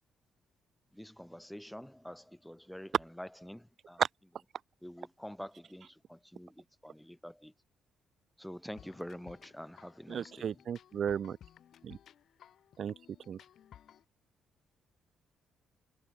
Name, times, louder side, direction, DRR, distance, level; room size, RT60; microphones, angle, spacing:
voice 1, 1.0-4.0 4.8-6.5 6.8-7.5 8.4-10.5, equal, 5° left, 1.0 m, -46 dB
sound 1, 8.8-14.0, left 10 dB, 65° left, 4.5 m, -58 dB
voice 2, 10.1-11.4 11.8-12.0 12.8-12.9 13.3-13.4, right 8 dB, 55° right, 0.6 m, -33 dB
cardioid pair, 90°, 0 cm